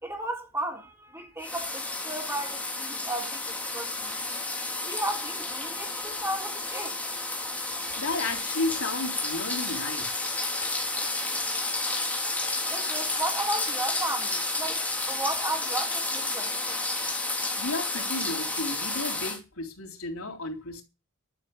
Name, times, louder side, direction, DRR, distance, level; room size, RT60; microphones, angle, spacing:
voice 1, 0.0-4.2 4.8-7.0 12.7-16.8, right 1 dB, 10° right, 3.7 m, -34 dB
sound 1, 1.4-19.4, left 2 dB, 5° left, 3.2 m, -31 dB
voice 2, 8.0-10.1 17.6-20.8, left 2 dB, 85° left, 3.7 m, -33 dB
11.5 x 6.6 x 8.6 m
head